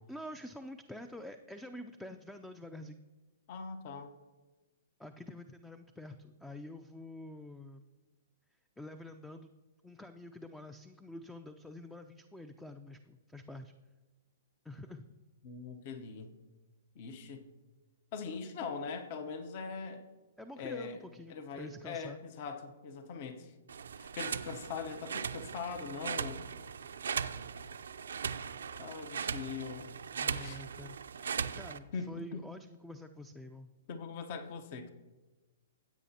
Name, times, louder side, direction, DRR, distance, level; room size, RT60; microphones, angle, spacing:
voice 1, 0.1-3.0 5.0-7.9 8.8-9.5 9.8-13.7 14.6-15.1 20.4-22.2 30.2-31.0 31.5-33.7, left 1 dB, 5° left, 8 dB, 0.4 m, -47 dB
voice 2, 3.5-4.1 15.4-16.3 16.9-17.5 18.1-20.0 20.6-21.0 21.3-23.5 24.0-26.4 28.8-29.9 30.4-30.6 31.9-32.4 33.9-34.9, left 5 dB, 50° left, 8 dB, 0.9 m, -41 dB
sound 1, 23.7-31.8, right 6 dB, 75° right, 0.5 m, -39 dB
15.5 x 8.2 x 2.8 m, 1.2 s
hypercardioid pair, 125°, 0 cm